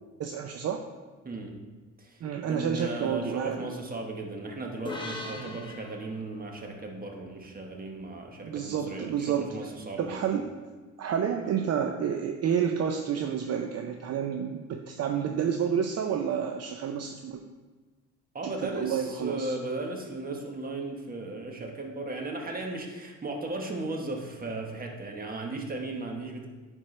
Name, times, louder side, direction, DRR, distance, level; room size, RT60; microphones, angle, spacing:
voice 1, 0.2-0.9 2.2-3.7 5.4-5.7 8.4-9.5 10.0-10.4 11.0-17.4 18.4-19.5, right 8 dB, 55° right, 4 dB, 0.6 m, -30 dB
voice 2, 1.2-1.5 2.0-10.4 18.3-26.5, right 2 dB, 30° right, 2 dB, 1.3 m, -36 dB
sound 1, 4.8-8.3, left 2 dB, 15° left, 1.3 m, -42 dB
10.5 x 4.5 x 3.3 m, 1.3 s
cardioid pair, 90°, 30 cm